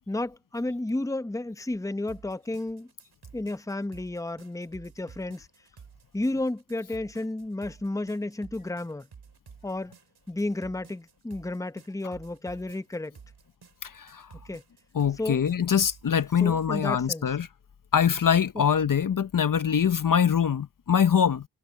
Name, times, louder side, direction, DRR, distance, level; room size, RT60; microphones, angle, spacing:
voice 1, 0.1-2.9 3.3-5.5 6.1-9.1 9.6-9.9 10.3-13.2 14.4-14.6 15.2-15.4 16.4-17.3 18.5-18.6, left 2 dB, 10° left, 0.9 m, -32 dB
sound 1, 2.1-16.8, right 6 dB, 75° right, 7.8 m, -52 dB
voice 2, 13.8-14.3 14.9-17.5 17.9-21.5, left 8 dB, 55° left, 0.9 m, -23 dB
cardioid pair, 45°, 40 cm